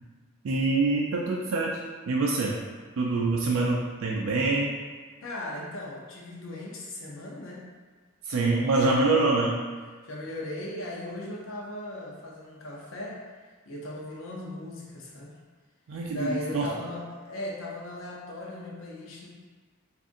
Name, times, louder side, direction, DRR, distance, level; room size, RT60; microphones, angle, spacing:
voice 1, 0.4-1.8 2.1-2.6 3.0-4.7 8.2-9.6 15.9-16.7, right 3 dB, 85° right, -2 dB, 0.4 m, -25 dB
voice 2, 5.2-7.6 10.0-13.2 13.7-15.3 16.1-19.3, left 1 dB, 80° left, -3 dB, 0.6 m, -37 dB
2.5 x 2.5 x 3.6 m, 1.5 s
head